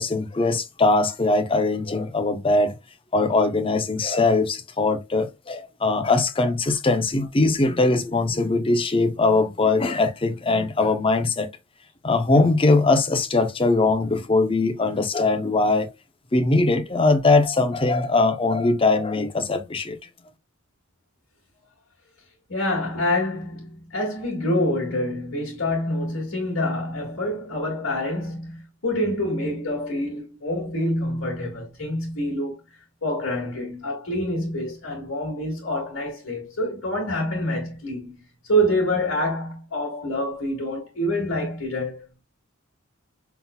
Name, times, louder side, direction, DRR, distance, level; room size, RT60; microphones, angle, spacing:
voice 1, 0.0-2.8 3.1-11.5 12.0-15.9 16.3-20.0, left 3 dB, 25° left, 0.6 m, -21 dB
voice 2, 22.5-32.6 33.0-38.2 38.5-42.2, left 1 dB, 80° left, 2.1 m, -26 dB
5.6 x 4.0 x 2.2 m
head